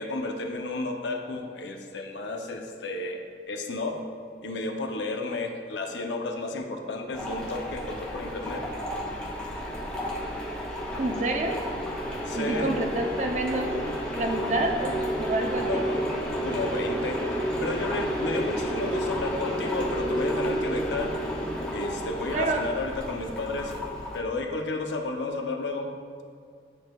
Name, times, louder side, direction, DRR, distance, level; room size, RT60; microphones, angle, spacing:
voice 1, 0.0-4.0 4.4-8.7 12.3-12.8 15.5-16.0 16.4-17.2 17.6-21.3 21.7-23.7 24.1-26.0, left 2 dB, 80° left, 3 dB, 0.7 m, -32 dB
sound 1, 7.1-24.2, equal, 5° left, 0.7 m, -31 dB
voice 2, 11.0-11.6 12.3-13.7 14.2-15.9 22.3-22.7, right 2 dB, 40° right, 3 dB, 0.5 m, -28 dB
10.5 x 4.1 x 2.3 m, 2.2 s
head